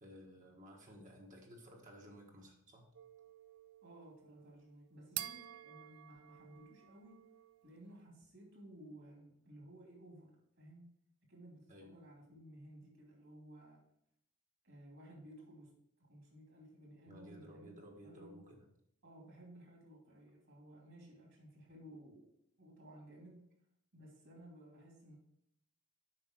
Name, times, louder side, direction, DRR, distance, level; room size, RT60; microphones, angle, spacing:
voice 1, 0.0-2.8 11.7-11.9 17.1-18.6, equal, 35° right, 0 dB, 1.4 m, -55 dB
sound 1, 2.9-7.8, right 14 dB, 75° right, 0.4 m, -50 dB
voice 2, 3.8-7.2 7.6-10.9 11.3-13.8 14.6-15.7 16.1-18.4 19.0-22.3 22.6-23.4 23.9-25.2, right 1 dB, 60° right, -1 dB, 2.8 m, -57 dB
7.7 x 5.7 x 4.5 m, 0.74 s
head